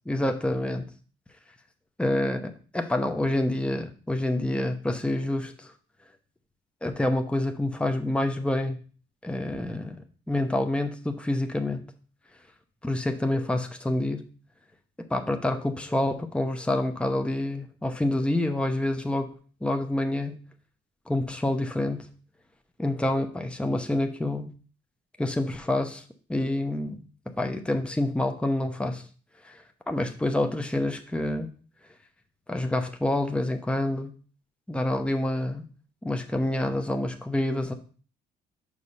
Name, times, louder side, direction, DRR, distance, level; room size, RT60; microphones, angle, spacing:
voice 1, 0.1-0.9 2.0-5.7 6.8-8.8 9.2-10.0 10.3-11.8 12.8-14.2 15.1-19.3 19.6-20.4 21.1-22.1 22.8-24.5 25.2-26.0 26.3-27.0 27.4-29.0 29.4-29.6 29.9-31.5 32.5-34.1 34.7-35.6 36.0-37.7, left 1 dB, 5° left, 5 dB, 0.8 m, -27 dB
5.4 x 4.9 x 5.5 m, 0.40 s
cardioid pair, 90°, 20 cm